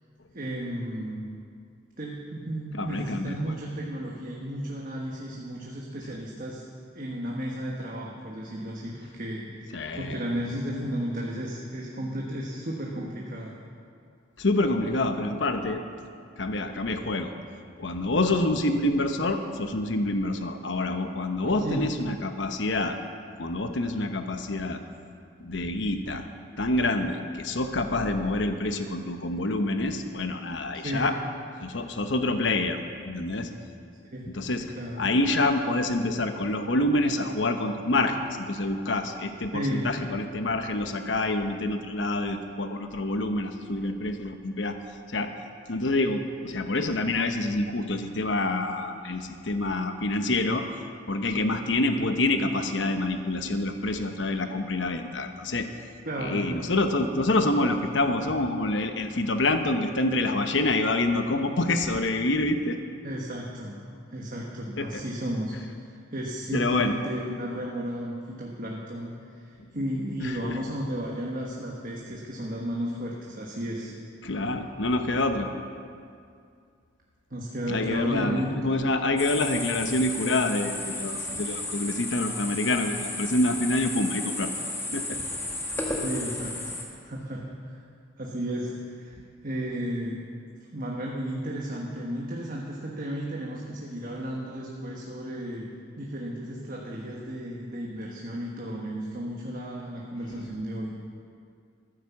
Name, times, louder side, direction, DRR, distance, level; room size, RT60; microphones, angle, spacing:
voice 1, 0.3-1.3 2.0-6.6 6.9-13.5 21.4-21.8 30.8-31.1 34.1-34.3 34.6-35.1 39.5-39.8 56.0-56.5 63.0-63.8 64.1-73.9 77.3-78.7 86.0-86.7 87.0-87.8 88.2-90.2 90.6-95.7 96.0-100.9, equal, 50° right, -2 dB, 1.4 m, -33 dB
voice 2, 2.7-3.5 9.7-10.2 14.4-15.8 16.4-17.3 17.8-23.0 23.4-24.8 25.4-26.2 26.6-31.1 31.6-33.5 34.3-34.7 35.0-44.8 45.1-45.3 45.7-50.7 51.1-55.7 56.2-62.8 64.8-65.0 66.5-67.0 70.2-70.6 74.2-75.5 77.7-84.5 84.9-85.2 100.3-100.5, left 2 dB, 80° left, 7 dB, 1.0 m, -27 dB
sound 1, 79.2-86.8, left 2 dB, 15° left, 1.8 m, -33 dB
14.0 x 10.0 x 7.2 m, 2.3 s
head